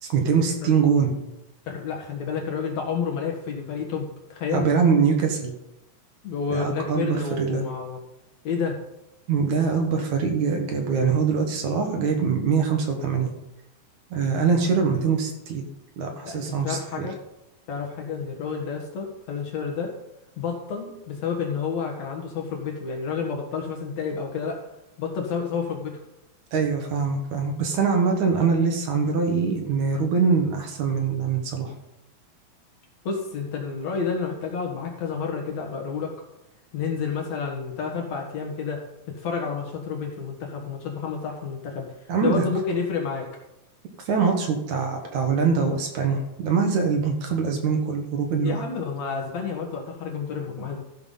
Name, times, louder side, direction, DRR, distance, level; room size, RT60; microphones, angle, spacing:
voice 1, 0.0-1.1 4.5-5.5 6.5-7.6 9.3-13.3 14.1-15.6 16.0-17.1 26.5-31.7 42.1-42.4 44.1-48.6, right 5 dB, 65° right, 3 dB, 2.4 m, -23 dB
voice 2, 1.7-4.7 6.2-8.0 8.4-8.8 16.2-17.2 17.7-19.9 20.4-24.6 25.0-26.0 33.0-36.1 36.7-41.9 42.2-43.3 48.4-50.8, left 5 dB, 60° left, 1 dB, 2.5 m, -30 dB
14.0 x 5.9 x 5.5 m, 0.91 s
omnidirectional pair, 4.1 m